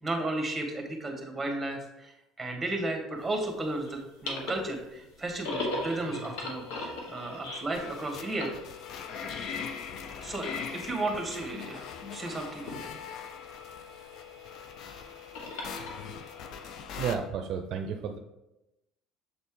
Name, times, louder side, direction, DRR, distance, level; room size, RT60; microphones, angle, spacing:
voice 1, 0.0-8.5 10.2-11.9 12.1-12.9 14.8-14.9, right 2 dB, 10° right, 3 dB, 1.7 m, -34 dB
sound 1, 3.2-16.8, left 2 dB, 80° left, 1.3 m, -41 dB
sound 2, 7.7-17.2, left 6 dB, 60° left, 0.6 m, -41 dB
voice 2, 17.0-18.2, right 7 dB, 60° right, 6 dB, 0.5 m, -32 dB
6.7 x 4.1 x 3.7 m, 0.92 s
supercardioid pair, 90°, 0 cm